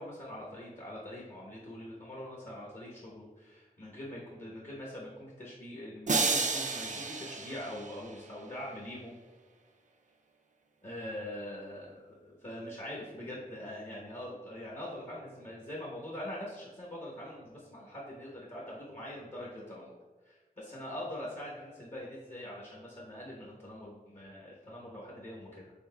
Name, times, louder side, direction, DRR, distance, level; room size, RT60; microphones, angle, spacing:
voice 1, 0.0-9.2 10.8-20.0 20.2-25.7, left 1 dB, 50° left, -6 dB, 1.0 m, -43 dB
sound 1, 6.1-8.3, right 4 dB, 50° right, 0.4 m, -31 dB
5.5 x 3.6 x 2.3 m, 1.3 s
wide cardioid pair, 55°, 16 cm